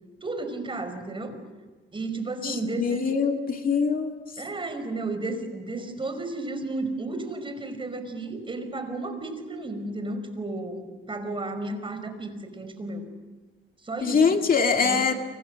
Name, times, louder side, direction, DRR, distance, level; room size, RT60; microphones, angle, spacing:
voice 1, 0.2-1.4 1.9-3.0 4.4-13.1 13.8-14.4 14.8-15.0, right 2 dB, 25° right, 8 dB, 5.2 m, -33 dB
voice 2, 2.4-4.2 14.0-15.1, left 5 dB, 45° left, 4 dB, 2.3 m, -23 dB
29.0 x 26.0 x 6.4 m, 1.3 s
cardioid pair, 90°, 20 cm